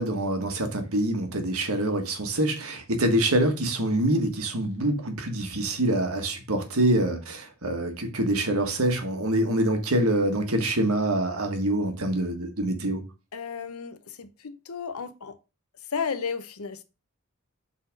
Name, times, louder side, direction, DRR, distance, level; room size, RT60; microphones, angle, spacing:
voice 1, 0.0-13.0, right 1 dB, 90° right, 1.5 m, -25 dB
voice 2, 13.3-15.4 15.9-16.8, left 6 dB, 85° left, 0.8 m, -33 dB
5.6 x 4.2 x 5.2 m
head